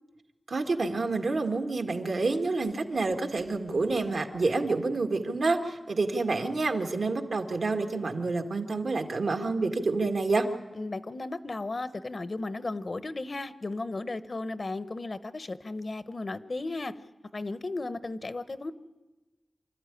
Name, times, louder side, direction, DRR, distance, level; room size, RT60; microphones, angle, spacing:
voice 1, 0.5-10.5, right 3 dB, 80° right, 5 dB, 1.8 m, -28 dB
voice 2, 10.7-17.0 17.3-18.7, left 2 dB, 55° left, 13 dB, 0.9 m, -35 dB
26.0 x 13.0 x 10.0 m, 1.2 s
wide cardioid pair, 65°, 0 cm